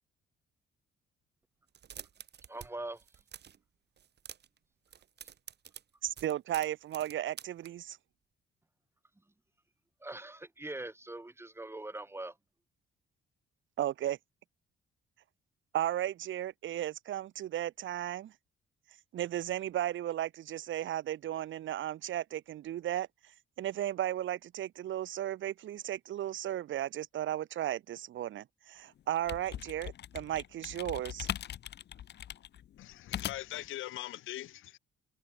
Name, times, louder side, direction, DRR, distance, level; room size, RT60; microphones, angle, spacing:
sound 1, 1.7-2.7 2.9-3.6 4.0-4.6 4.9-7.7, right 8 dB, 60° right, 5.4 m, -49 dB
voice 1, 2.5-3.0 10.0-12.3, right 2 dB, 10° right, 2.9 m, -42 dB
voice 2, 6.0-8.0 13.8-14.2 15.7-18.3 19.1-31.3, right 12 dB, 75° right, 3.0 m, -35 dB
sound 2, 29.0-33.7, left 11 dB, 60° left, 0.9 m, -41 dB
voice 3, 32.8-34.8, left 15 dB, 85° left, 4.0 m, -41 dB
cardioid pair, 90°, 20 cm